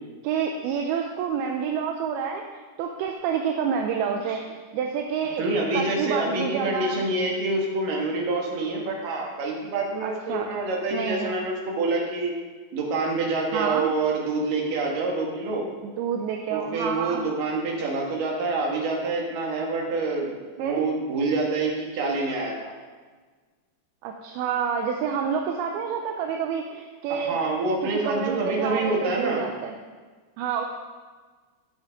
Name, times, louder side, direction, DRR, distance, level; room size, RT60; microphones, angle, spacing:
voice 1, 0.2-2.4 2.8-5.4 5.7-7.1 10.0-10.5 10.9-11.4 13.5-13.9 15.8-17.2 20.6-20.9 24.0-27.4 27.8-29.7 30.4-30.7, right 7 dB, 75° right, 3 dB, 2.4 m, -28 dB
voice 2, 5.4-12.3 12.7-15.7 16.5-22.7 27.1-29.5, right 3 dB, 60° right, -1 dB, 3.1 m, -27 dB
17.0 x 7.8 x 3.7 m, 1.4 s
omnidirectional pair, 4.9 m